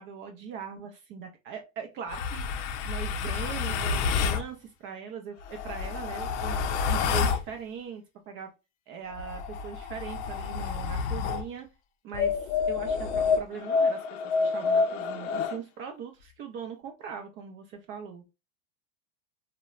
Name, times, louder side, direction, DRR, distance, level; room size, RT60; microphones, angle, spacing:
voice 1, 0.0-8.5 8.9-11.7 12.0-18.2, right 7 dB, 35° right, 4 dB, 0.4 m, -40 dB
sound 1, 2.1-4.5 5.4-7.5 9.1-11.5 12.1-15.6, left 5 dB, 80° left, 0.5 m, -28 dB
2.9 x 2.1 x 2.2 m, 0.27 s
supercardioid pair, 130°, 35 cm